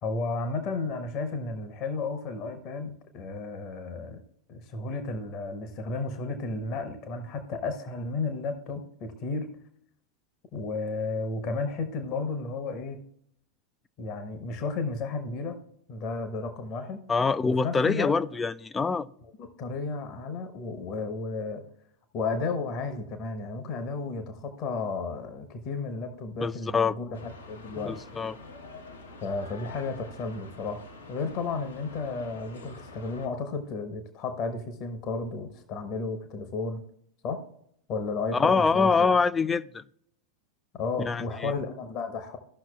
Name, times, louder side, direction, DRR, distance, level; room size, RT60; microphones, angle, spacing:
voice 1, 0.0-4.2 4.5-9.5 10.5-13.0 14.0-15.6 15.9-17.0 17.5-18.1 19.4-21.6 22.1-27.9 29.2-30.8 31.1-36.8 37.2-37.4 37.9-39.1 40.7-42.4, left 3 dB, 40° left, 1.0 m, -33 dB
voice 2, 17.1-19.1 26.4-27.0 27.8-28.4 38.3-39.8 41.0-41.5, left 4 dB, 15° left, 0.4 m, -25 dB
sound 1, 27.1-33.3, left 2 dB, 75° left, 1.1 m, -46 dB
15.0 x 6.0 x 2.3 m
figure-of-eight pair, 90°, 0 cm